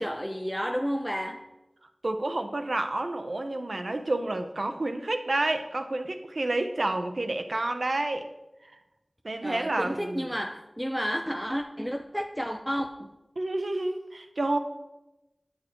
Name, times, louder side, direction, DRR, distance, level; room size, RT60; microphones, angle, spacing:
voice 1, 0.0-1.5 9.4-13.2, equal, ahead, 0.4 m, -31 dB
voice 2, 2.0-8.3 8.7-8.8 9.2-10.3 13.4-14.6, right 2 dB, 75° right, 0.7 m, -29 dB
10.0 x 6.5 x 3.0 m
wide cardioid pair, 45°, 0 cm